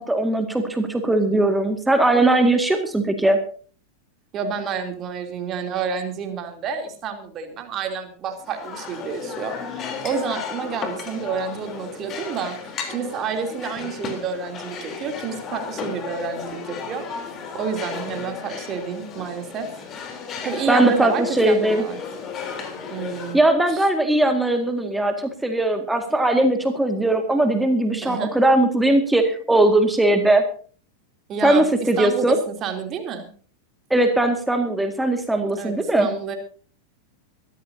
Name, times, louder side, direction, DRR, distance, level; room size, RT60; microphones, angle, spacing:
voice 1, 0.0-3.4 20.7-21.8 23.3-30.4 31.4-32.4 33.9-36.1, right 1 dB, 5° right, 6 dB, 2.0 m, -19 dB
voice 2, 4.3-12.6 12.9-17.1 17.5-19.7 20.4-22.0 22.9-23.4 23.7-23.8 28.0-28.3 31.3-33.3 35.6-36.4, right 6 dB, 30° right, 5 dB, 3.2 m, -29 dB
sound 1, 8.4-23.4, left 6 dB, 30° left, 3.5 m, -34 dB
23.5 x 14.0 x 2.8 m, 0.42 s
figure-of-eight pair, 90°, 0 cm